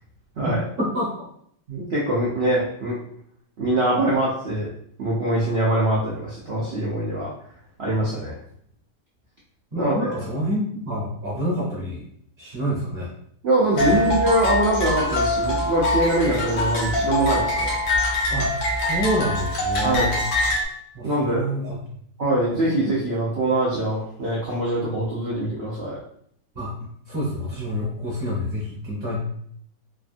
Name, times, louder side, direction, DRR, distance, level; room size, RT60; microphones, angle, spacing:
voice 1, 0.8-1.3 9.7-12.0 12.4-13.1 13.8-14.1 18.3-20.2 20.9-21.8 26.5-26.7 27.1-29.2, equal, 45° right, -6 dB, 0.9 m, -28 dB
voice 2, 1.7-3.0 3.6-4.7 5.0-7.3 7.8-8.3 9.8-10.1 13.4-17.7 19.8-20.1 21.0-21.5 22.2-26.0, right 1 dB, 80° right, -6 dB, 0.5 m, -23 dB
sound 1, 13.8-20.7, left 1 dB, 60° left, 0.9 m, -23 dB
3.3 x 2.2 x 2.5 m, 0.67 s
omnidirectional pair, 1.9 m